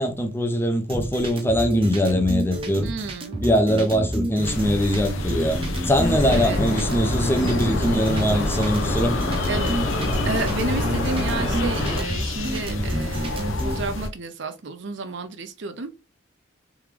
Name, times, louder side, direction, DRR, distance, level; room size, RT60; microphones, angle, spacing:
voice 1, 0.0-2.9 3.4-5.6 5.8-9.2, equal, 10° left, 0.6 m, -22 dB
sound 1, 0.9-13.8, right 1 dB, 25° right, 0.8 m, -29 dB
voice 2, 2.8-3.5 6.3-6.6 9.5-9.8 10.2-15.9, right 3 dB, 60° right, 0.6 m, -31 dB
sound 2, 4.4-14.1, left 2 dB, 80° left, 0.7 m, -28 dB
sound 3, 6.0-12.0, left 1 dB, 55° left, 1.1 m, -28 dB
3.5 x 3.5 x 3.3 m
head